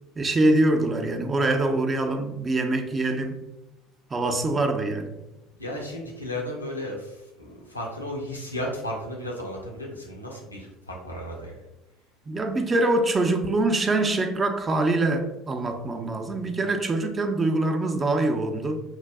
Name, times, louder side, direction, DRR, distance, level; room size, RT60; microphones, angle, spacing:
voice 1, 0.2-3.4 4.1-5.2 12.3-18.8, right 2 dB, 25° right, 0.5 m, -24 dB
voice 2, 5.6-11.5, left 1 dB, 90° left, 0.6 m, -34 dB
5.7 x 2.6 x 2.2 m
figure-of-eight pair, 65°, 0 cm